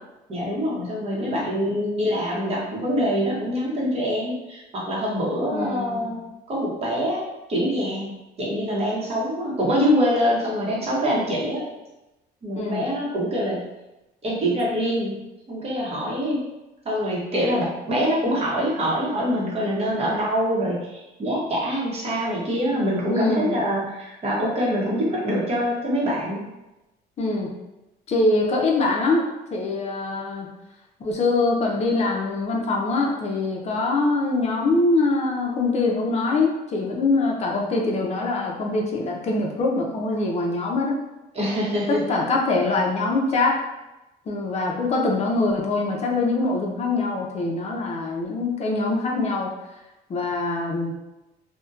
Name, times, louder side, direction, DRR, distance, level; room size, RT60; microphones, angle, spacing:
voice 1, 0.3-6.2 6.5-11.7 12.4-13.7 14.2-15.2 15.5-16.4 16.8-26.4 41.3-42.0, equal, 35° right, -5 dB, 0.9 m, -25 dB
voice 2, 5.5-6.2 12.5-12.9 23.1-23.6 27.2-27.5 28.1-30.5 31.0-41.0 41.9-43.6 44.3-49.5 50.1-50.9, left 3 dB, 40° left, 0 dB, 0.5 m, -23 dB
2.6 x 2.1 x 2.3 m, 0.99 s
cardioid pair, 110°, 17 cm